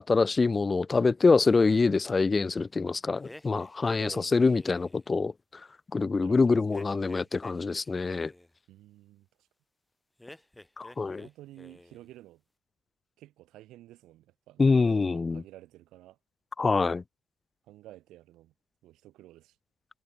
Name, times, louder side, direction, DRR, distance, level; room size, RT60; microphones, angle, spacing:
voice 1, 0.0-5.3 5.9-8.3 10.8-11.3 14.6-15.4 16.6-17.0, left 4 dB, 30° left, 0.4 m, -25 dB
sound 1, 3.2-5.1 6.7-8.5 10.2-11.3 11.6-12.1, left 1 dB, 10° left, 2.4 m, -51 dB
voice 2, 4.0-4.5 6.2-6.6 8.7-9.3 10.9-12.4 13.2-16.2 17.7-18.5 18.8-19.6, right 15 dB, 90° right, 5.4 m, -51 dB
cardioid pair, 90°, 0 cm